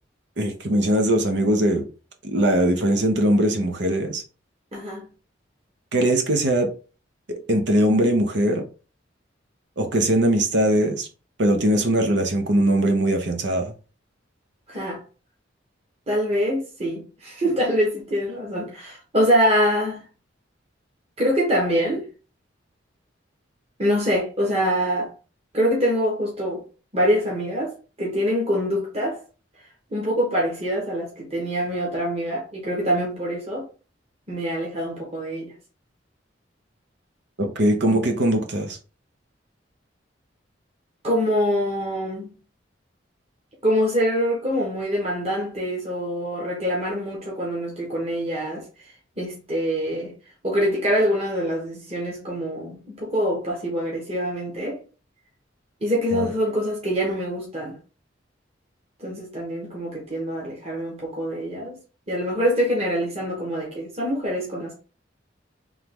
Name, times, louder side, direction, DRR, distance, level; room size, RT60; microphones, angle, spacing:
voice 1, 0.4-1.8 2.2-4.2 5.9-6.7 7.3-8.7 9.8-11.1 11.4-13.7 37.4-38.8 56.1-56.3, right 1 dB, 65° right, 0.8 m, -21 dB
voice 2, 4.7-5.1 14.7-15.0 16.1-20.0 21.2-22.0 23.8-25.1 25.5-26.6 26.9-27.7 28.0-29.2 29.9-33.7 34.3-35.5 41.0-42.3 43.6-50.1 50.4-54.8 55.8-57.8 59.0-61.8 62.1-64.7, equal, 35° right, 1.2 m, -24 dB
3.6 x 3.0 x 3.6 m
head